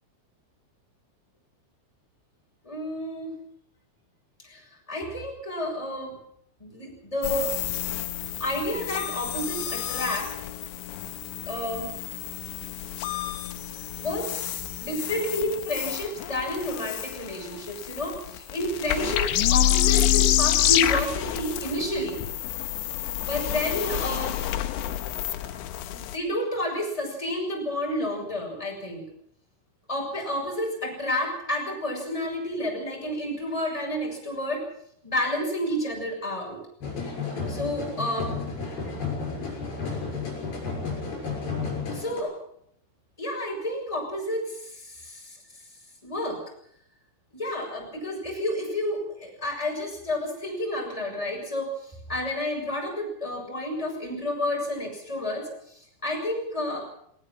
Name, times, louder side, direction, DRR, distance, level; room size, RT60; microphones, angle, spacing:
voice 1, 2.6-3.3 4.4-6.2 6.6-7.6 8.4-10.3 11.5-11.9 14.0-22.2 23.2-24.4 25.4-25.6 25.9-29.1 29.9-34.6 35.0-36.6 37.5-38.4 41.9-42.4 43.2-45.4 46.0-46.4 47.3-56.8, left 1 dB, 5° left, 0 dB, 6.3 m, -30 dB
sound 1, 7.2-26.2, left 13 dB, 80° left, 3.3 m, -28 dB
sound 2, 36.8-42.2, left 4 dB, 45° left, 7.9 m, -32 dB
19.0 x 18.5 x 7.5 m, 0.70 s
omnidirectional pair, 5.7 m